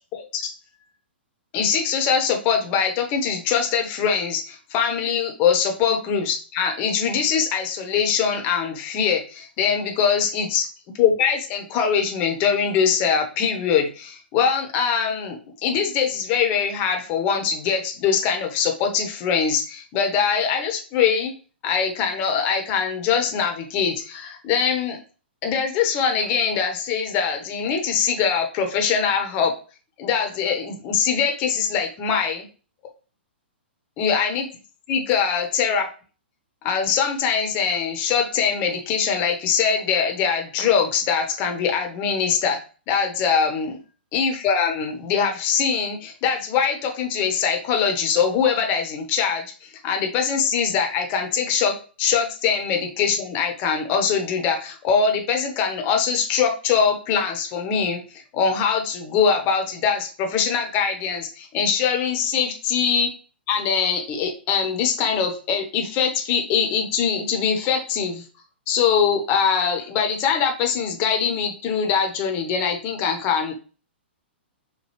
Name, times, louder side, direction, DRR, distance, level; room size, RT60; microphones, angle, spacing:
voice 1, 0.1-0.5 1.5-10.7 11.0-21.3 21.6-25.0 25.4-29.5 30.0-32.5 34.0-34.5 34.9-35.9 36.6-42.6 42.9-43.8 44.1-63.1 63.5-68.2 68.7-73.5, left 6 dB, 30° left, 3 dB, 0.9 m, -22 dB
4.9 x 2.2 x 3.1 m, 0.36 s
figure-of-eight pair, 110°, 6 cm